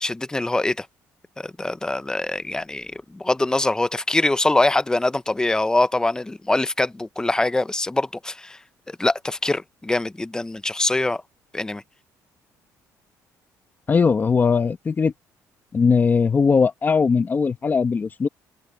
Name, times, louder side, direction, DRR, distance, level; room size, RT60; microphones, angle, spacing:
voice 1, 0.0-0.9 1.4-8.6 8.9-11.2 11.5-11.8, left 2 dB, 10° left, 0.7 m, -23 dB
voice 2, 13.9-15.1 15.7-18.3, left 5 dB, 30° left, 1.8 m, -19 dB
cardioid pair, 120°, 7 cm